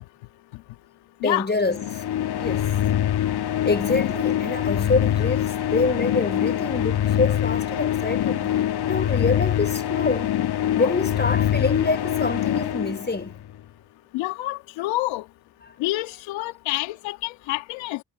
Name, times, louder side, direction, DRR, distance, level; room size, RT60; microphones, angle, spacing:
voice 1, 1.2-1.8 2.3-2.7 3.6-10.4 10.7-13.3, left 3 dB, 25° left, 4.6 m, -26 dB
sound 1, 1.7-13.5, left 11 dB, 60° left, 1.5 m, -24 dB
voice 2, 14.1-15.3 15.8-18.0, left 18 dB, 80° left, 1.8 m, -28 dB
hypercardioid pair, 50°, 44 cm